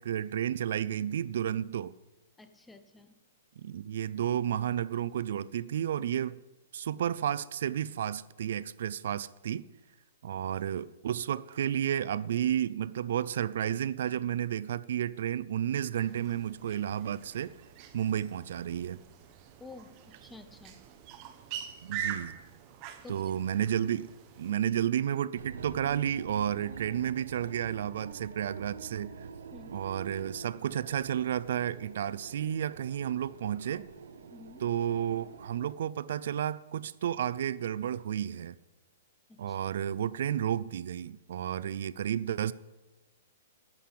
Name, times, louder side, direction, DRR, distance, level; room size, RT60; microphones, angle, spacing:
voice 1, 0.0-1.9 3.6-6.4 6.7-9.6 10.2-17.5 17.9-19.0 21.8-22.3 23.1-24.1 24.4-29.3 29.7-33.9 34.6-38.5 39.4-42.5, right 10 dB, 60° right, 0.4 m, -32 dB
voice 2, 2.4-3.2 19.6-20.8 23.0-23.2 29.5-29.7 34.3-34.6 39.3-39.6, left 2 dB, 5° left, 0.8 m, -50 dB
sound 1, 16.0-24.5, right 9 dB, 25° right, 1.0 m, -44 dB
sound 2, 25.3-35.8, right 6 dB, 75° right, 1.1 m, -46 dB
11.5 x 7.6 x 8.6 m
hypercardioid pair, 170°, 0 cm